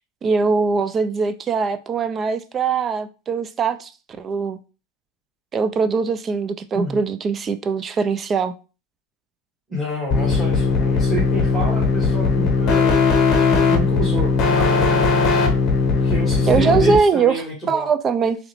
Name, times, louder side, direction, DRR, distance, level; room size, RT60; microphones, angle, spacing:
voice 1, 0.2-3.9 4.2-4.6 5.5-8.5 16.5-18.4, right 5 dB, 25° right, 0.4 m, -21 dB
voice 2, 9.7-15.0 15.9-17.9, right 1 dB, 5° right, 1.8 m, -29 dB
sound 1, 10.1-17.0, left 4 dB, 40° left, 0.8 m, -18 dB
3.7 x 3.2 x 3.0 m
supercardioid pair, 135°, 0 cm